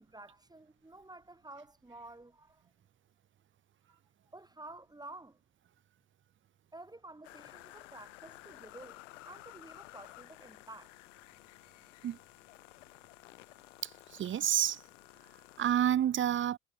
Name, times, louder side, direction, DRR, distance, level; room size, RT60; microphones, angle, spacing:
voice 1, 0.0-2.6 4.3-5.4 6.7-10.9, right 2 dB, 10° right, 5.7 m, -51 dB
sound 1, 7.2-15.7, left 18 dB, 75° left, 4.1 m, -54 dB
voice 2, 13.8-14.8 15.6-16.6, right 10 dB, 30° right, 1.0 m, -29 dB
hypercardioid pair, 70°, 37 cm